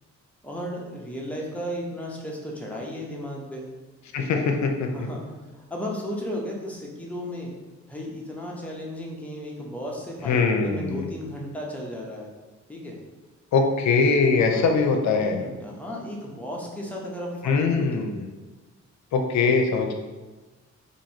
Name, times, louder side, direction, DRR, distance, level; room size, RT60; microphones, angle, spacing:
voice 1, 0.4-3.7 4.3-7.5 7.9-12.3 12.7-13.0 14.5-18.1, equal, 5° left, -3 dB, 0.7 m, -35 dB
voice 2, 4.1-4.9 10.3-11.1 13.5-15.4 17.4-18.2 19.1-19.9, left 4 dB, 70° left, 3 dB, 0.6 m, -22 dB
2.9 x 2.7 x 4.2 m, 1.2 s
cardioid pair, 130°, 29 cm